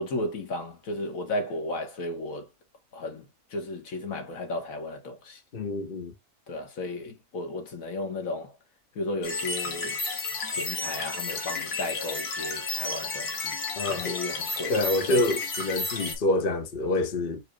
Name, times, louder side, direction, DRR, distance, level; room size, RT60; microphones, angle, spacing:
voice 1, 0.0-2.5 2.9-3.2 3.5-5.4 6.5-8.5 9.0-10.0 10.5-13.6 13.9-14.8 15.1-15.2, left 2 dB, 60° left, 1.3 m, -34 dB
voice 2, 5.5-6.1 13.8-14.2 14.7-17.4, left 2 dB, 40° left, 1.0 m, -27 dB
sound 1, 9.2-16.2, left 3 dB, 75° left, 1.7 m, -32 dB
4.9 x 2.2 x 4.7 m
omnidirectional pair, 1.7 m